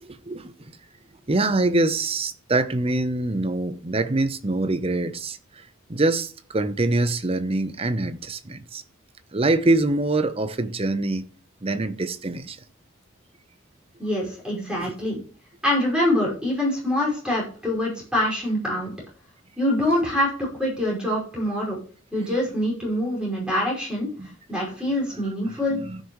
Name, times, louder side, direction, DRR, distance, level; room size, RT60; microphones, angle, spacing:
voice 1, 0.0-0.5 1.3-5.6 5.9-8.8 9.3-11.2 11.6-12.6 14.7-14.9 24.2-24.3 25.5-26.0, right 2 dB, 30° right, 0.7 m, -24 dB
voice 2, 14.0-15.2 15.6-18.9 19.6-20.3 20.6-21.8 22.1-24.1 24.5-25.8, left 1 dB, 5° right, 5.3 m, -24 dB
15.0 x 6.4 x 3.1 m
head